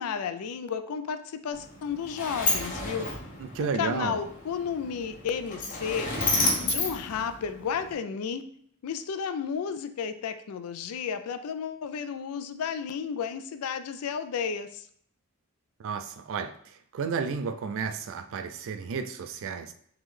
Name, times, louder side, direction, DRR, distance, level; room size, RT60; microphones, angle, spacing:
voice 1, 0.0-3.1 3.6-6.1 6.6-8.4 8.8-14.9, left 7 dB, 85° left, 0.4 m, -32 dB
Sliding door, 1.5-7.9, left 2 dB, 40° left, 0.8 m, -31 dB
voice 2, 3.4-4.2 15.8-19.7, right 5 dB, 65° right, 0.4 m, -32 dB
3.7 x 3.0 x 3.2 m
head